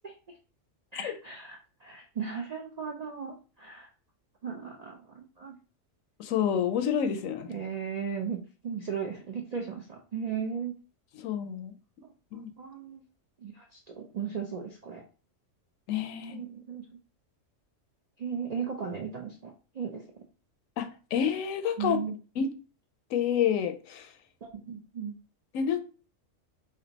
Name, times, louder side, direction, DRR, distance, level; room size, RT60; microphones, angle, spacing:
voice 1, 0.0-0.4 0.9-3.9 4.4-5.6 7.5-10.7 12.0-13.0 13.4-15.0 16.3-16.8 18.2-20.0 21.8-22.2 24.4-25.1, right 6 dB, 65° right, 0.4 m, -36 dB
voice 2, 6.2-7.5 11.2-11.7 12.3-12.5 15.9-16.4 20.8-22.0 22.4-22.5 23.1-24.1 25.5-25.8, left 8 dB, 85° left, 1.0 m, -28 dB
3.3 x 2.6 x 3.9 m
omnidirectional pair, 1.3 m